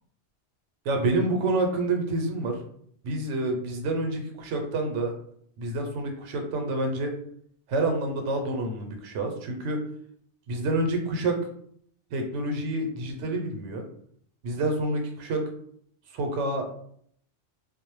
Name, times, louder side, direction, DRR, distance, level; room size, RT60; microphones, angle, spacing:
voice 1, 0.8-2.6 3.0-5.1 5.6-7.1 7.7-9.8 10.5-11.4 12.1-13.8 14.4-15.4 16.1-16.7, right 2 dB, 80° right, 4 dB, 0.9 m, -28 dB
2.3 x 2.0 x 3.0 m, 0.65 s
omnidirectional pair, 1.2 m